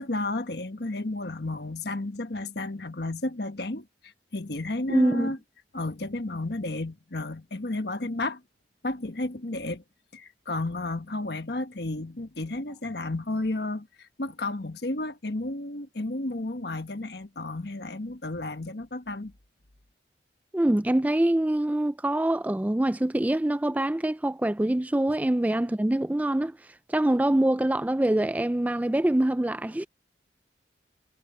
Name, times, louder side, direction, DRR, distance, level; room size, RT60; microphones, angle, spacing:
voice 1, 0.0-5.4 5.7-8.4 8.8-9.8 10.1-19.3, left 2 dB, 65° left, 1.4 m, -32 dB
voice 2, 4.9-5.3 20.5-26.6 26.9-29.9, right 1 dB, 10° right, 0.3 m, -24 dB
head